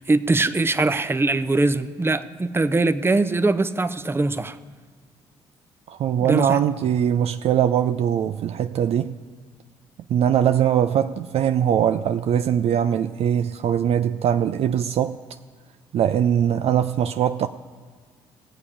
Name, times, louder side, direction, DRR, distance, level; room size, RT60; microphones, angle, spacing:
voice 1, 0.0-4.6 6.2-6.6, right 2 dB, 15° right, 0.7 m, -22 dB
voice 2, 5.9-9.2 10.1-15.2 15.9-17.5, right 9 dB, 50° right, 0.4 m, -21 dB
16.5 x 8.4 x 4.9 m
figure-of-eight pair, 45°, 13 cm